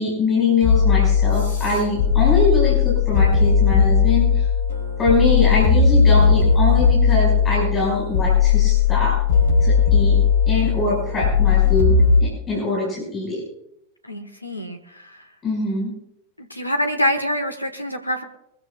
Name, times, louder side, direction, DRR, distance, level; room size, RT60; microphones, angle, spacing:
voice 1, 0.0-4.4 5.0-9.2 9.6-10.2 10.5-13.4 15.4-15.9, left 2 dB, 20° left, -4 dB, 5.2 m, -23 dB
sound 1, 0.6-12.2, left 6 dB, 65° left, 4.4 m, -17 dB
voice 2, 14.0-15.3 16.4-18.2, equal, 85° left, 6 dB, 1.3 m, -25 dB
23.5 x 14.5 x 2.3 m, 0.79 s
figure-of-eight pair, 90°, 0 cm